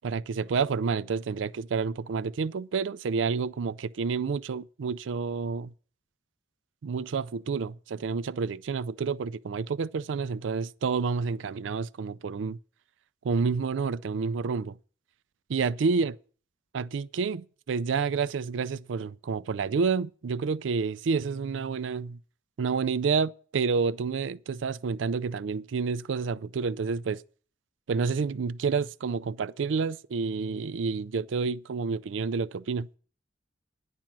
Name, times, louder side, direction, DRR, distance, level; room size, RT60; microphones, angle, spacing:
voice 1, 0.0-5.7 6.8-12.6 13.2-14.8 15.5-16.1 16.7-22.2 22.6-27.2 27.9-32.9, right 5 dB, 80° right, 0.4 m, -29 dB
10.5 x 6.0 x 8.8 m
head